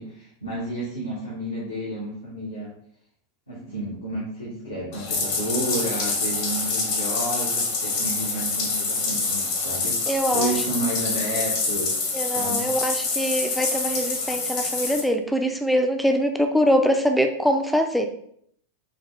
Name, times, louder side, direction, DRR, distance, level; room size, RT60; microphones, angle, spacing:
voice 1, 0.0-2.7 3.5-11.9 12.2-12.7, right 1 dB, 80° left, -7 dB, 1.3 m, -31 dB
Bathtub (filling or washing), 4.9-15.0, left 4 dB, 45° left, 1.0 m, -26 dB
voice 2, 10.1-10.5 12.1-18.1, equal, ahead, 5 dB, 0.4 m, -23 dB
4.2 x 2.9 x 3.6 m, 0.69 s
figure-of-eight pair, 90°, 0 cm